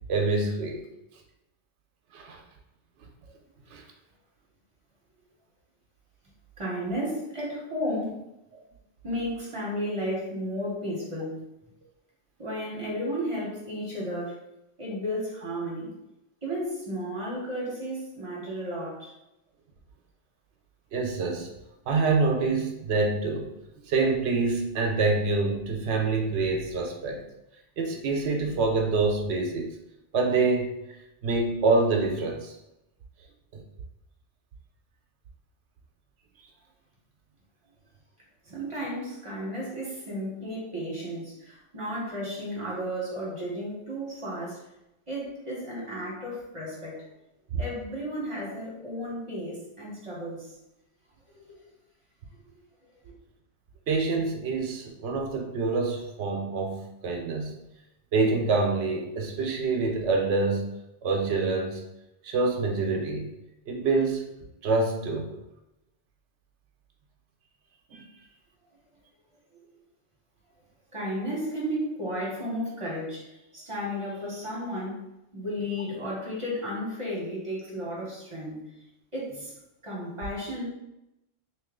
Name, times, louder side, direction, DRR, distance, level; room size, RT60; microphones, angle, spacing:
voice 1, 0.1-0.8 2.1-2.4 3.7-3.8 20.9-21.5 21.9-23.5 23.9-27.2 27.8-29.7 30.1-30.7 31.2-32.5 33.5-33.6 47.5-47.6 53.9-57.6 58.1-60.6 61.0-61.8 62.2-63.3 63.7-64.2 64.6-65.3 67.9-68.0, right 3 dB, 70° right, 1 dB, 0.9 m, -26 dB
voice 2, 6.6-8.1 9.0-11.4 12.4-14.4 14.8-15.9 16.4-19.1 38.4-44.8 45.1-47.1 47.6-50.6 51.3-51.6 52.8-52.9 70.9-75.0 75.3-78.6 79.1-79.5 79.8-80.7, equal, 30° right, -5 dB, 1.1 m, -33 dB
3.0 x 2.8 x 3.6 m, 0.88 s
omnidirectional pair, 1.2 m